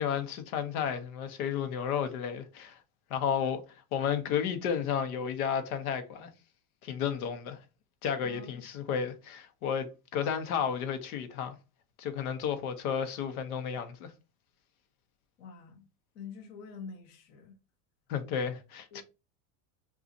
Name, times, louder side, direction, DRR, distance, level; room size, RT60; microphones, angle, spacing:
voice 1, 0.0-2.8 3.1-3.6 3.9-6.3 6.8-7.6 8.0-11.5 12.0-14.1 18.1-19.0, left 7 dB, 80° left, 0.9 m, -32 dB
voice 2, 8.2-8.6 15.4-15.8 16.1-17.5 18.9-19.0, left 5 dB, 25° left, 0.4 m, -46 dB
2.5 x 2.4 x 3.9 m
supercardioid pair, 170°, 43 cm